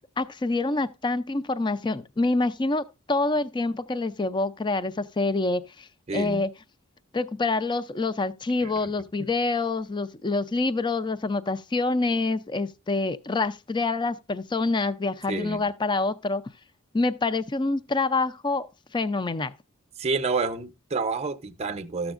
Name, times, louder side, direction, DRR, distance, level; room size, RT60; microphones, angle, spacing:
voice 1, 0.2-5.9 6.1-6.5 7.1-16.4 16.9-18.7 18.9-19.5, left 3 dB, 20° left, 0.4 m, -26 dB
voice 2, 6.1-6.5 8.6-8.9 9.2-9.3 15.3-15.6 20.0-22.1, right 4 dB, 30° right, 0.7 m, -29 dB
13.5 x 7.0 x 2.4 m
head